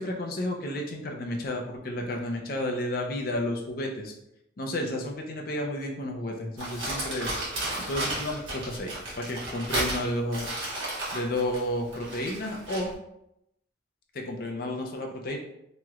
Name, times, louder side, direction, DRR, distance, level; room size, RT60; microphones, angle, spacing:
voice 1, 0.0-4.1 4.6-7.3 7.9-10.5 11.1-12.9 14.1-15.4, left 1 dB, 50° left, 1 dB, 0.5 m, -31 dB
Crumpling crinkling, 6.6-12.9, right 1 dB, 80° right, 1.4 m, -33 dB
3.1 x 2.9 x 2.3 m, 0.82 s
head